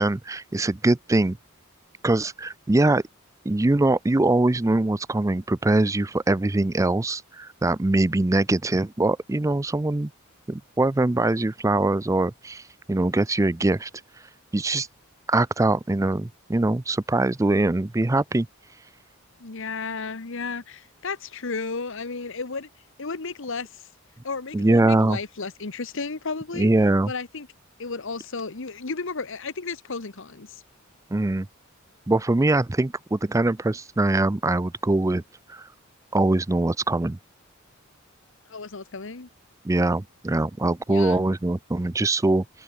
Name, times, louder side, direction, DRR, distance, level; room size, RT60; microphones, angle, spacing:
voice 1, 0.0-1.4 2.0-3.0 3.4-10.1 10.5-13.9 14.5-14.9 15.3-18.5 24.5-25.2 26.6-27.1 31.1-31.5 32.1-35.2 35.5-35.7 36.1-37.2 39.6-42.4, right 2 dB, 15° right, 0.5 m, -22 dB
voice 2, 19.4-22.7 23.0-23.8 24.2-26.7 27.0-27.5 27.8-30.6 38.5-39.3 40.9-41.2, left 4 dB, 65° left, 1.2 m, -33 dB
open air
head